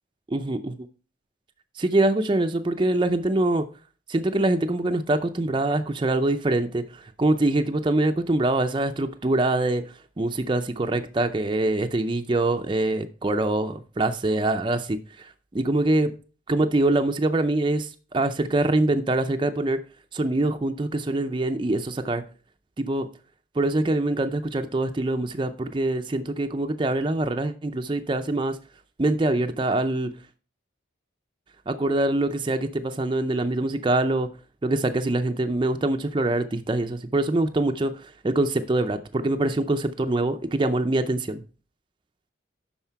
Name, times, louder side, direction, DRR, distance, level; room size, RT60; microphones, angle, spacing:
voice 1, 0.3-0.7 1.8-3.7 4.1-9.8 10.2-16.1 16.5-19.8 20.1-22.2 22.8-23.1 23.6-28.6 29.0-30.1 31.7-34.3 34.6-41.4, right 2 dB, 25° right, 0.4 m, -24 dB
11.5 x 4.3 x 4.5 m
head